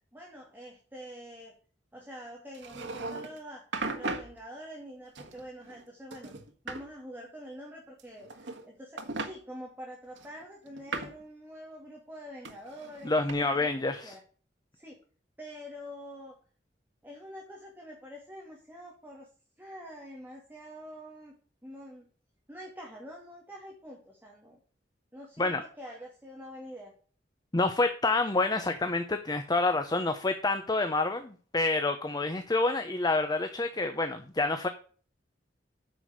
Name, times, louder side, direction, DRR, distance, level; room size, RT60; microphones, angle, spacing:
voice 1, 0.1-1.5 1.9-3.6 3.9-6.3 6.6-13.7 14.0-14.2 14.7-15.0 15.4-16.4 17.0-19.3 19.6-21.4 21.6-22.1 22.5-24.6 25.1-26.9, equal, 10° right, -2 dB, 2.5 m, -46 dB
sound 1, 2.5-3.4 3.7-4.3 5.1-5.8 6.1-6.8 8.0-8.7 9.0-9.3 10.2-11.2 12.4-13.3, right 3 dB, 90° right, 1.6 m, -37 dB
voice 2, 13.0-14.1 25.4-25.6 27.5-34.7, left 3 dB, 25° left, 8 dB, 0.8 m, -28 dB
9.4 x 6.2 x 6.5 m, 0.41 s
head